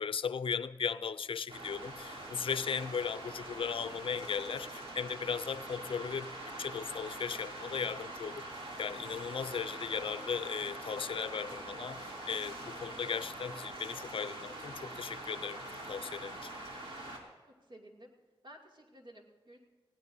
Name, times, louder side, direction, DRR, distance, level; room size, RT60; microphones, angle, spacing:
voice 1, 0.0-6.3 6.6-16.5, left 6 dB, 75° left, 0.5 m, -37 dB
sound 1, 1.5-17.2, right 1 dB, 90° right, 2.8 m, -44 dB
voice 2, 17.5-18.1 18.4-19.6, right 1 dB, 60° right, 2.5 m, -54 dB
20.0 x 17.0 x 2.7 m
wide cardioid pair, 125°, 9 cm